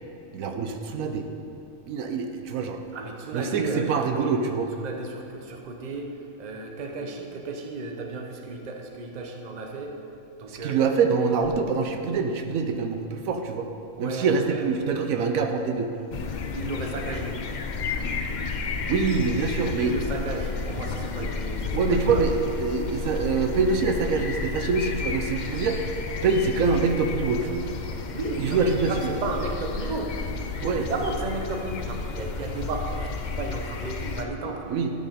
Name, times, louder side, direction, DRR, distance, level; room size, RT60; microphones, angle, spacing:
voice 1, 0.3-1.3 1.9-2.8 3.3-4.7 10.5-13.7 14.0-15.9 18.9-20.0 21.7-25.9 26.2-27.7 28.4-28.9 30.6-30.9 34.7-34.9, right 4 dB, 80° right, 5 dB, 1.1 m, -25 dB
voice 2, 2.9-4.3 4.8-10.0 10.4-10.8 14.0-14.7 16.5-17.4 19.8-22.3 28.1-30.2 30.4-34.7, right 3 dB, 35° right, 2 dB, 0.9 m, -34 dB
sound 1, 16.1-34.3, left 4 dB, 60° left, 0.4 m, -32 dB
12.5 x 5.4 x 5.1 m, 2.8 s
omnidirectional pair, 1.4 m